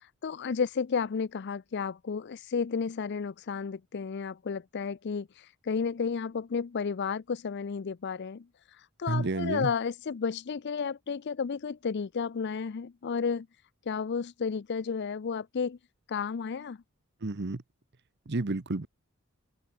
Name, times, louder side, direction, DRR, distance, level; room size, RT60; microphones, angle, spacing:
voice 1, 0.2-8.5 9.0-13.5 13.9-15.8 16.1-16.8, left 5 dB, 50° left, 0.5 m, -32 dB
voice 2, 9.1-9.7 17.2-17.6 18.3-18.9, right 2 dB, 55° right, 0.9 m, -30 dB
head